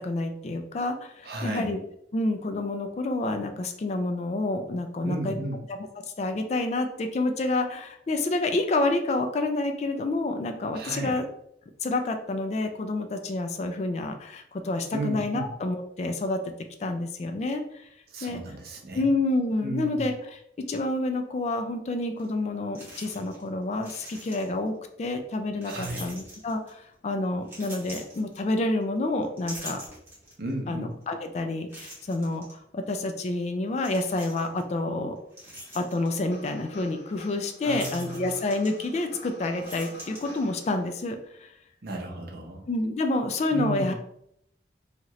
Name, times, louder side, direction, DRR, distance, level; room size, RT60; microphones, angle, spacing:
voice 1, 0.0-1.8 2.1-5.4 6.2-11.3 11.8-16.4 16.8-17.9 18.2-18.4 18.9-20.1 20.7-24.7 25.0-29.8 30.7-32.4 32.7-35.3 35.7-41.5 42.7-43.9, left 2 dB, 40° left, 6 dB, 0.3 m, -28 dB
voice 2, 1.2-1.7 5.0-5.7 10.7-11.2 14.9-15.5 18.1-19.1 19.6-20.1 25.6-26.1 30.4-30.9 37.7-38.4 41.8-42.7 43.5-43.9, right 2 dB, 60° right, 1 dB, 0.6 m, -34 dB
sound 1, 22.2-22.3 22.7-23.5 23.7-24.7 25.6-26.8 27.4-28.8 29.2-30.5 31.0-31.1 31.7-32.5 33.8-34.6 35.1-36.2 37.6-39.2 39.5-40.7, equal, 10° right, 1.0 m, -44 dB
sound 2, 36.3-41.1, left 1 dB, 70° left, 0.7 m, -46 dB
2.8 x 2.4 x 3.0 m, 0.72 s
head